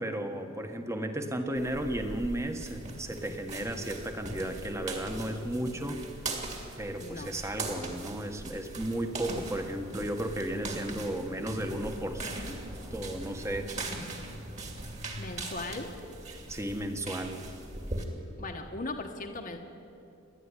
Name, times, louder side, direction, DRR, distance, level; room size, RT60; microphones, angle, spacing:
voice 1, 0.0-6.0 6.8-12.6 12.9-13.7 16.5-17.4, right 1 dB, 15° right, 5 dB, 1.4 m, -34 dB
sound 1, 1.6-18.0, right 2 dB, 35° right, 2.6 m, -40 dB
voice 2, 15.2-15.9 18.4-19.6, left 2 dB, 40° left, 3 dB, 1.3 m, -38 dB
29.0 x 11.0 x 9.9 m, 2.7 s
head